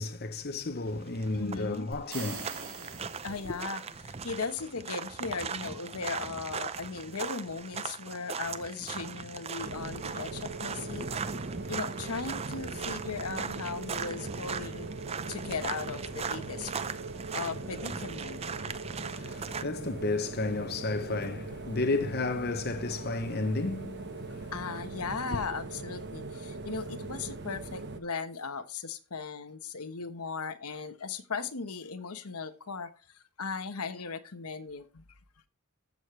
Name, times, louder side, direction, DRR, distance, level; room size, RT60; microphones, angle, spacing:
voice 1, 0.0-2.6 3.4-3.5 18.6-24.5 25.3-25.4, left 3 dB, 45° left, 0.7 m, -33 dB
sound 1, 0.9-19.6, right 5 dB, 25° right, 0.5 m, -39 dB
voice 2, 1.3-1.9 3.2-11.1 11.7-14.9 15.3-16.7 17.3-18.4 19.0-19.1 24.5-32.9 33.4-35.0, left 4 dB, 85° left, 1.1 m, -37 dB
sound 2, 1.9-4.0, right 5 dB, 75° right, 3.8 m, -43 dB
sound 3, 9.6-28.0, right 3 dB, 50° right, 1.1 m, -41 dB
14.5 x 6.5 x 3.2 m
head